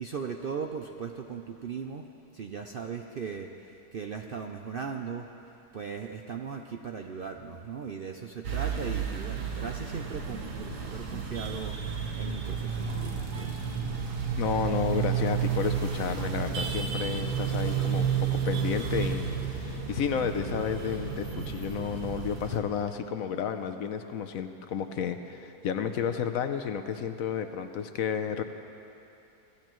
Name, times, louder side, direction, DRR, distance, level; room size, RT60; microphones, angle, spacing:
voice 1, 0.0-2.0 2.3-5.3 5.7-13.7, right 6 dB, 70° right, 3 dB, 0.5 m, -38 dB
sound 1, 8.4-22.6, right 7 dB, 85° right, 1.8 m, -31 dB
voice 2, 14.4-28.4, left 7 dB, 65° left, 8 dB, 1.0 m, -31 dB
26.5 x 16.5 x 3.1 m, 2.9 s
omnidirectional pair, 1.7 m